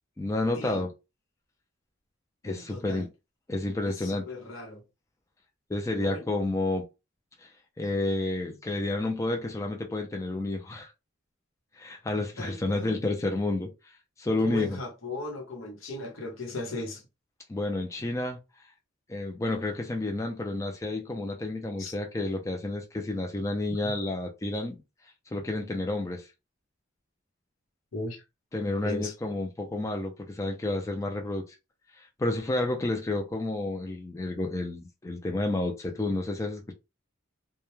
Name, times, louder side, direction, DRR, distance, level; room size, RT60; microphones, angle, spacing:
voice 1, 0.2-0.9 2.4-3.1 3.5-4.2 5.7-6.9 7.8-10.9 11.8-13.7 14.2-14.8 17.5-18.4 19.1-24.8 25.3-26.3 28.5-31.5 32.2-36.7, left 2 dB, 15° left, 0.4 m, -30 dB
voice 2, 2.4-3.1 3.8-4.8 6.0-6.3 12.4-13.0 14.4-17.0 21.8-21.9 23.8-23.9 27.9-28.2 28.8-29.1, left 2 dB, 85° left, 0.9 m, -37 dB
2.2 x 2.1 x 3.0 m
head